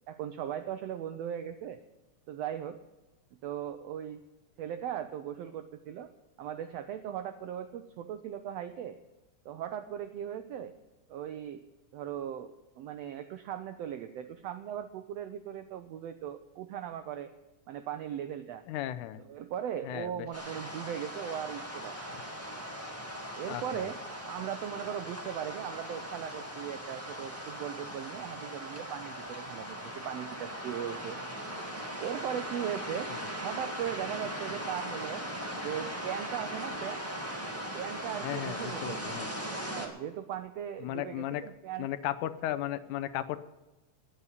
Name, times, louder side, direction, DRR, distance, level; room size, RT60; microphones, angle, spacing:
voice 1, 0.1-1.8 2.3-2.8 3.4-4.2 4.6-6.1 6.4-9.0 9.4-10.7 11.1-11.6 11.9-17.3 17.7-18.6 19.2-22.2 23.3-24.0 24.2-31.2 32.0-33.1 33.4-35.2 35.6-37.0 37.7-39.2 39.6-41.9, right 10 dB, 85° right, 9 dB, 1.4 m, -38 dB
voice 2, 18.7-19.2 19.8-20.3 23.5-23.9 33.1-33.2 38.2-39.3 40.8-41.4 41.8-43.4, left 13 dB, 85° left, 12 dB, 2.1 m, -35 dB
sound 1, 20.3-39.9, equal, 5° right, 1.2 m, -39 dB
9.7 x 9.5 x 9.8 m, 1.0 s
omnidirectional pair, 3.6 m